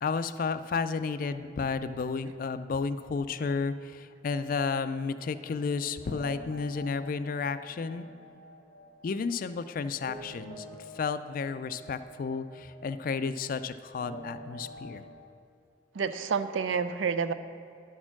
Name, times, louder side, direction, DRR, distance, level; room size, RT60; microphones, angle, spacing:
voice 1, 0.0-8.1 9.0-10.7 10.9-15.0, left 5 dB, 45° left, 12 dB, 0.3 m, -32 dB
sound 1, 4.7-15.2, equal, 70° right, 1.4 m, -48 dB
voice 2, 16.0-17.3, right 6 dB, 85° right, 11 dB, 0.5 m, -29 dB
11.0 x 4.4 x 5.9 m, 2.5 s
head